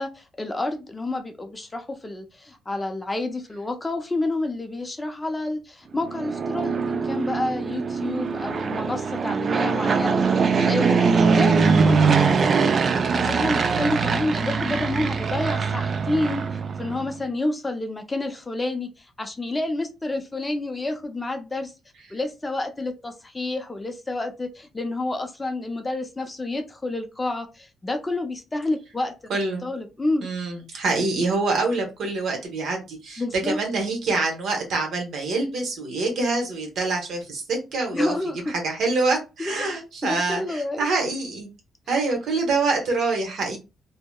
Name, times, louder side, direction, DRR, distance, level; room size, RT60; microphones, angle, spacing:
voice 1, 0.0-10.2 10.6-21.7 22.1-30.3 33.2-33.6 37.9-38.6 39.4-39.7 40.0-40.9 41.9-42.0, left 2 dB, 20° left, 0.5 m, -29 dB
Fixed-wing aircraft airplane, 6.0-17.1, right 5 dB, 45° right, 0.3 m, -22 dB
voice 2, 29.3-29.7 30.2-38.1 38.5-41.5 41.9-43.6, right 3 dB, 70° right, 1.0 m, -25 dB
2.7 x 2.0 x 2.2 m
cardioid pair, 90°, 0 cm